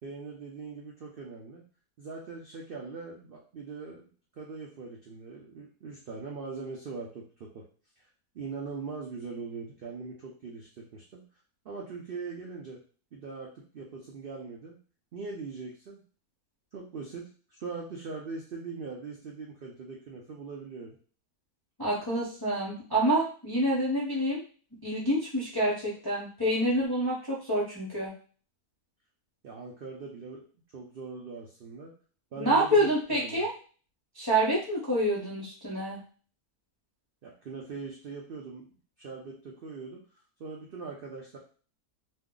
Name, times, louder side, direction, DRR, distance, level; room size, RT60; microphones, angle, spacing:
voice 1, 0.0-1.6 2.0-4.0 4.4-7.7 8.3-11.2 11.6-12.8 13.1-14.8 15.1-16.0 16.7-21.0 29.4-30.5 30.7-31.9 32.3-33.5 37.2-38.7 39.0-40.0 40.4-41.4, right 4 dB, 85° right, -1 dB, 0.4 m, -41 dB
voice 2, 21.8-24.4 24.8-28.1 32.4-33.5 34.2-36.0, right 1 dB, 30° left, -7 dB, 0.4 m, -27 dB
2.6 x 2.1 x 3.7 m, 0.39 s
omnidirectional pair, 1.7 m